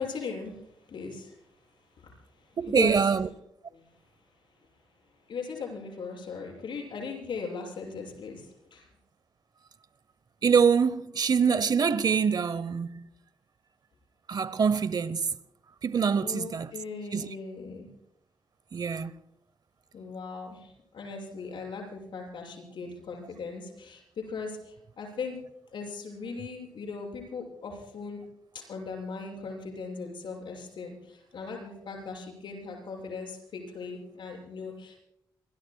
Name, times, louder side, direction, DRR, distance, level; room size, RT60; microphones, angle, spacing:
voice 1, 0.0-1.4 1.9-3.0 3.7-4.0 5.3-8.9 16.2-17.9 19.9-25.4 25.7-28.2 28.5-35.0, left 4 dB, 70° left, 6.8 m, -39 dB
voice 2, 2.6-3.3 10.4-13.1 14.3-15.3 15.8-16.7 17.1-17.3 18.7-19.1, right 6 dB, 55° right, 0.9 m, -25 dB
28.0 x 22.0 x 2.3 m
cardioid pair, 80°, 8 cm